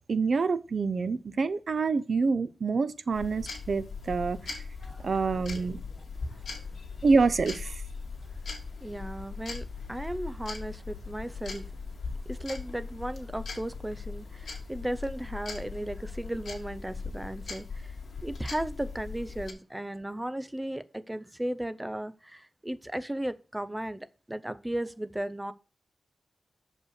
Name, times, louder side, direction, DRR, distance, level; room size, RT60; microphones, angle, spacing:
voice 1, 0.1-4.4 5.0-5.8 7.0-7.7, right 4 dB, 55° right, 0.6 m, -26 dB
sound 1, 3.1-19.5, left 4 dB, 75° left, 2.0 m, -39 dB
voice 2, 6.0-6.4 8.8-11.7 12.3-18.0 18.2-25.5, right 1 dB, 10° right, 0.5 m, -36 dB
6.7 x 5.4 x 6.4 m
wide cardioid pair, 150°, 0 cm